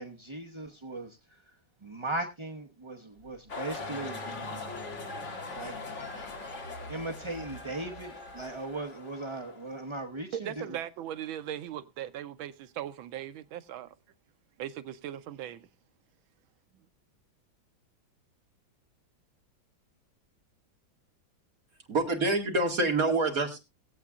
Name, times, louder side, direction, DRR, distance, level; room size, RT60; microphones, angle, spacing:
voice 1, 0.0-1.4 1.8-4.3 5.6-5.8 6.9-10.8, right 2 dB, 30° right, 0.6 m, -38 dB
sound 1, 3.2-8.7, equal, 75° left, 2.8 m, -47 dB
sound 2, 3.5-9.8, left 3 dB, 40° left, 1.9 m, -41 dB
voice 2, 10.3-13.9 14.6-15.7, right 11 dB, 90° right, 1.6 m, -38 dB
voice 3, 21.9-23.6, right 2 dB, 45° right, 2.5 m, -26 dB
20.5 x 8.2 x 2.4 m
omnidirectional pair, 2.1 m